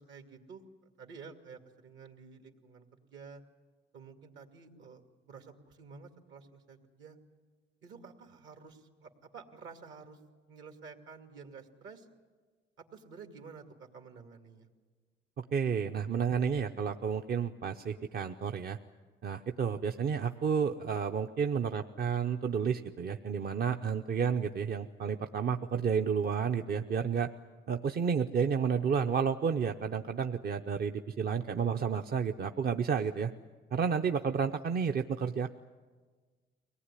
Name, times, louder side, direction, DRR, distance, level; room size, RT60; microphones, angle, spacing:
voice 1, 0.0-3.4 3.9-7.2 7.8-10.2 10.5-12.1 12.9-14.7, right 5 dB, 75° right, 6 dB, 2.3 m, -51 dB
voice 2, 15.4-18.8 19.2-27.3 27.7-33.3 33.7-35.5, right 6 dB, 50° right, 6 dB, 0.7 m, -31 dB
23.5 x 18.5 x 9.9 m, 1.5 s
cardioid pair, 90°, 20 cm